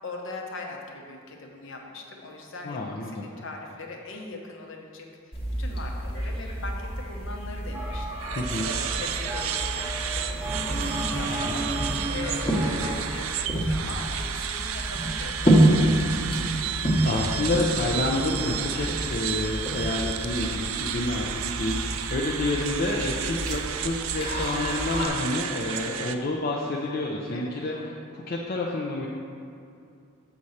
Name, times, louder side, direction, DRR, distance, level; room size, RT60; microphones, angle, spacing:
voice 1, 0.0-8.2 8.6-10.4 10.7-17.0 27.3-27.9, left 2 dB, 60° left, 1 dB, 0.9 m, -40 dB
voice 2, 2.6-3.3 8.4-8.7 11.3-11.4 17.0-27.7 28.1-29.1, left 2 dB, 45° left, -3 dB, 0.5 m, -29 dB
sound 1, 5.3-25.1, right 1 dB, 25° left, 1.1 m, -29 dB
sound 2, 7.7-13.0, right 2 dB, 10° right, 0.7 m, -34 dB
sound 3, 8.2-26.2, right 9 dB, 70° right, 0.4 m, -32 dB
7.1 x 4.2 x 6.4 m, 2.5 s
head